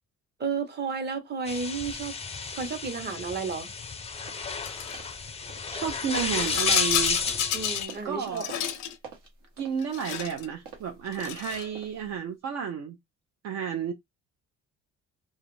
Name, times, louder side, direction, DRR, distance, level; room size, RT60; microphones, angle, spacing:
voice 1, 0.4-2.2 2.5-3.7 7.5-8.6, right 5 dB, 35° right, 0.8 m, -32 dB
sound 1, 1.5-7.9, left 5 dB, 20° left, 0.3 m, -31 dB
sound 2, 4.3-4.5 4.9-5.2 5.5-6.3 6.6-12.2, right 5 dB, 85° right, 1.0 m, -48 dB
Rattle, 4.6-5.0 6.0-8.0 8.3-9.0 9.8-10.5 11.1-11.7, left 10 dB, 85° left, 0.5 m, -32 dB
voice 2, 5.7-7.2 8.0-8.5 9.6-13.0 13.4-13.9, right 7 dB, 60° right, 0.5 m, -32 dB
2.3 x 2.0 x 3.1 m
cardioid pair, 90°, 30 cm